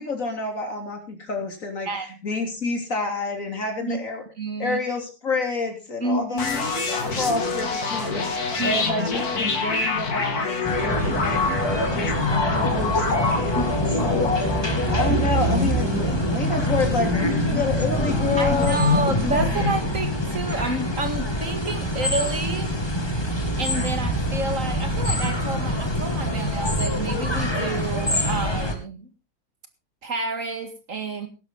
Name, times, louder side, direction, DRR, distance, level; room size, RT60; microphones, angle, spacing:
voice 1, 0.0-4.2 4.6-11.4 11.9-14.3 14.9-19.0, left 3 dB, 60° left, 4 dB, 3.7 m, -29 dB
voice 2, 1.9-2.2 3.8-4.0 4.4-4.8 6.0-6.9 8.6-9.3 13.6-14.1 18.4-22.7 23.6-29.1 30.0-31.3, right 2 dB, 60° right, 8 dB, 2.3 m, -29 dB
sound 1, 6.4-20.0, left 4 dB, 90° left, 2.8 m, -26 dB
sound 2, 10.6-28.8, equal, 15° left, 2.2 m, -25 dB
17.0 x 12.0 x 3.8 m, 0.30 s
omnidirectional pair, 1.6 m